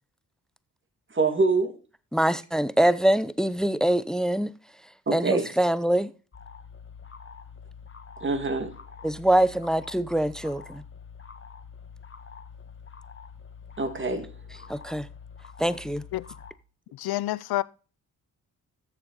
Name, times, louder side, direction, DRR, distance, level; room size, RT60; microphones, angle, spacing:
voice 1, 1.1-1.7 5.1-5.5 8.2-8.7 13.8-14.3, right 3 dB, 30° right, 1.8 m, -25 dB
voice 2, 2.1-4.5 5.1-6.1 9.0-10.8 14.7-15.1 15.6-16.0, right 1 dB, ahead, 0.5 m, -24 dB
sound 1, 6.3-16.5, left 6 dB, 35° left, 1.4 m, -46 dB
voice 3, 16.9-17.6, left 15 dB, 75° left, 0.6 m, -28 dB
13.0 x 6.9 x 3.8 m
cardioid pair, 65°, 38 cm